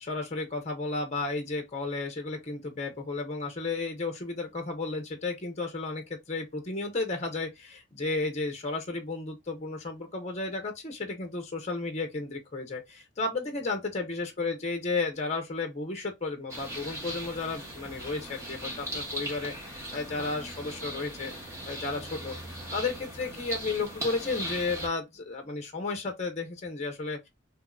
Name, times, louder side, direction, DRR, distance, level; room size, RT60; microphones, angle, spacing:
voice 1, 0.0-21.3 21.6-22.4 22.7-27.3, left 3 dB, 35° left, 0.7 m, -33 dB
sound 1, 16.5-24.9, right 1 dB, 15° right, 1.0 m, -39 dB
2.9 x 2.7 x 2.2 m
head